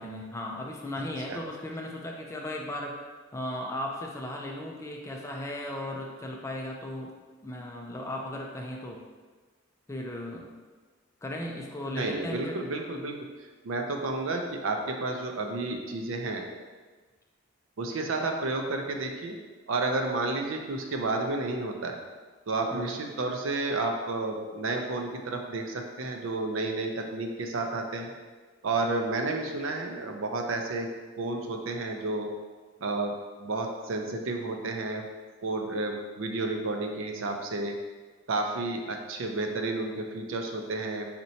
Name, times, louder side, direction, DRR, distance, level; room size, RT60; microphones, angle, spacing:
voice 1, 0.0-3.0 3.3-7.1 7.4-9.0 9.9-10.5 11.2-12.7 22.7-23.0, left 1 dB, 15° left, 0 dB, 0.4 m, -36 dB
voice 2, 11.9-13.1 13.6-16.4 17.8-19.3 19.7-22.0 22.5-28.1 28.6-30.9 31.2-32.3 32.8-33.1 33.4-35.0 35.4-37.7 38.3-41.1, right 2 dB, 85° right, 3 dB, 0.5 m, -31 dB
4.3 x 4.3 x 2.7 m, 1.4 s
head